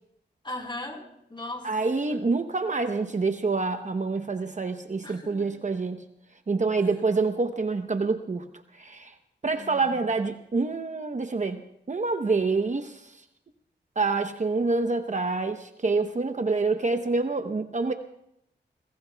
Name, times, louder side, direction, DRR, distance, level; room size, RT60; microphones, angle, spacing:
voice 1, 0.4-1.7 2.1-2.2 5.0-5.3 9.5-10.0 10.8-10.9, left 1 dB, 25° left, 1 dB, 4.1 m, -38 dB
voice 2, 1.6-6.0 6.5-8.4 8.7-9.1 9.4-11.6 11.9-13.1 14.0-17.9, right 3 dB, 40° right, 7 dB, 0.9 m, -27 dB
27.0 x 21.0 x 2.3 m, 0.78 s
wide cardioid pair, 85°, 19 cm